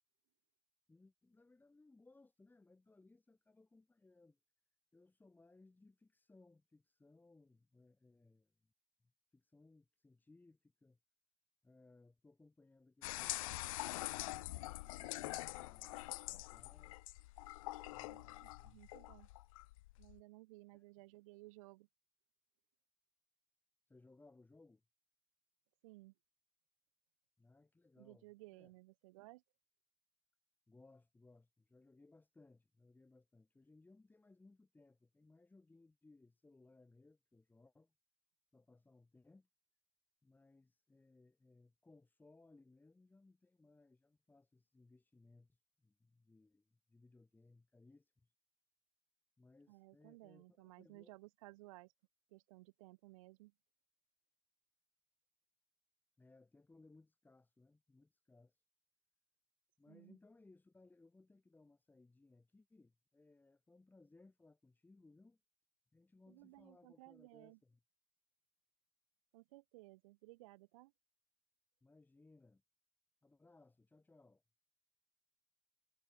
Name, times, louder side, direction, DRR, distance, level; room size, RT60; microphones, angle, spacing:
voice 1, 0.9-4.4 4.9-8.7 9.0-11.0 11.6-16.9 17.9-19.0 20.7-20.8 23.9-24.8 27.4-28.3 28.5-28.7 30.7-37.9 38.5-39.5 40.2-48.3 49.4-51.2 56.2-58.6 59.8-65.4 65.9-67.8 71.8-72.6 73.2-74.4, left 3 dB, 10° left, 4.1 m, -66 dB
sound 1, 13.0-20.2, left 19 dB, 80° left, 0.8 m, -45 dB
voice 2, 18.1-19.3 20.0-21.9 25.8-26.1 28.0-29.4 49.7-51.9 52.3-53.5 59.9-60.2 66.3-67.6 69.3-70.9, right 21 dB, 80° right, 1.3 m, -58 dB
supercardioid pair, 115°, 17 cm